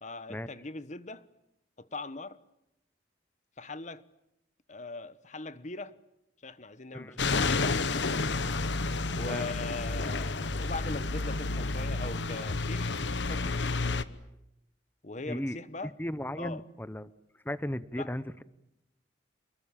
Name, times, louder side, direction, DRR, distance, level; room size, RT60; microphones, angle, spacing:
voice 1, 0.0-1.2 1.8-2.4 3.6-4.0 4.7-6.0 6.4-7.8 9.1-13.0 13.2-13.8 15.0-15.9 16.4-16.6 18.0-18.1, left 3 dB, 40° left, 1.2 m, -40 dB
sound 1, 7.2-14.0, left 3 dB, 70° left, 1.1 m, -30 dB
voice 2, 15.3-15.6 16.0-17.1 17.4-18.4, equal, 10° left, 0.9 m, -35 dB
28.0 x 21.5 x 8.7 m
head